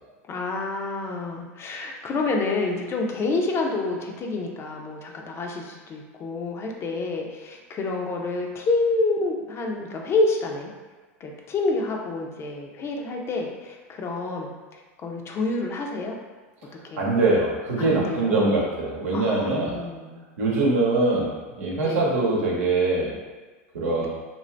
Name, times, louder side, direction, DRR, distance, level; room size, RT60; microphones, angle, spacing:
voice 1, 0.3-10.7 11.2-14.5 15.0-16.2 16.8-17.1 17.8-18.6 19.1-20.2 21.8-22.0 24.0-24.1, left 3 dB, 35° left, 1 dB, 0.5 m, -28 dB
voice 2, 17.0-19.8 20.4-23.1 23.7-24.1, right 2 dB, 80° right, -4 dB, 0.9 m, -23 dB
2.6 x 2.4 x 3.2 m, 1.3 s
hypercardioid pair, 100°, 8 cm